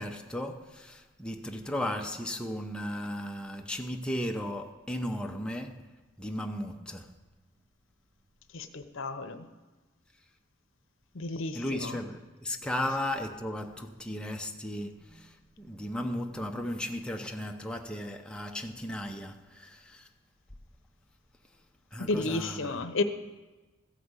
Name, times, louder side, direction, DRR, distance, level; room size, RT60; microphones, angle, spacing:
voice 1, 0.0-5.9 6.2-7.1 11.5-20.1 21.9-22.7, left 1 dB, 5° left, 0.7 m, -35 dB
voice 2, 8.5-9.5 11.1-12.0 22.0-23.0, left 2 dB, 60° left, 0.8 m, -32 dB
15.0 x 5.0 x 8.1 m
head